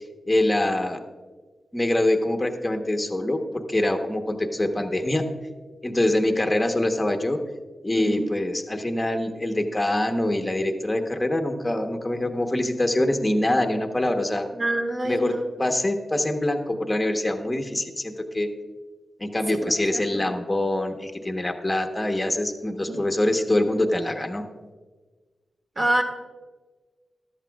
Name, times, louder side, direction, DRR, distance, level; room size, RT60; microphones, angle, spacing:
voice 1, 0.3-1.0 1.7-5.3 5.8-7.4 7.8-14.5 15.0-15.3 15.6-18.5 19.2-24.4, left 1 dB, 15° left, 4 dB, 1.0 m, -24 dB
voice 2, 7.9-8.2 14.5-15.4 19.5-20.3 22.9-23.0 25.7-26.0, right 1 dB, 35° right, 3 dB, 1.6 m, -27 dB
14.0 x 11.5 x 2.3 m, 1.3 s
wide cardioid pair, 110°, 0 cm